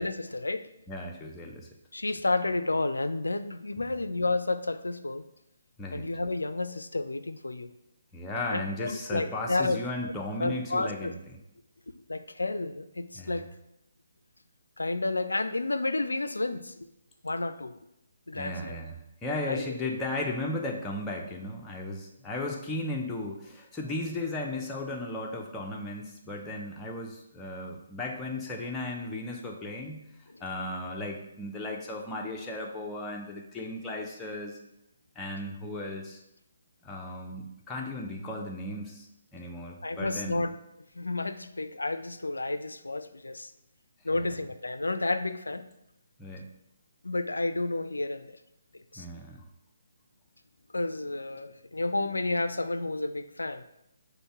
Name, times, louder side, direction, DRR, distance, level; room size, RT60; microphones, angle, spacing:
voice 1, 0.0-0.7 1.9-5.3 5.9-7.7 8.5-10.1 10.4-11.1 12.1-13.5 14.8-16.7 17.2-17.7 18.3-18.8 19.5-19.8 30.3-30.4 39.8-40.5 41.0-43.5 44.0-45.7 47.0-48.4 48.7-49.1 50.7-53.6, left 2 dB, 75° left, 10 dB, 0.3 m, -31 dB
voice 2, 0.9-1.7 5.8-6.1 8.1-11.4 13.2-13.4 18.3-30.0 30.4-34.6 35.2-36.2 36.8-39.1 39.3-40.4 46.2-46.4 49.0-49.4, left 2 dB, 10° left, -1 dB, 0.6 m, -35 dB
5.1 x 2.1 x 4.6 m, 0.84 s
figure-of-eight pair, 140°, 0 cm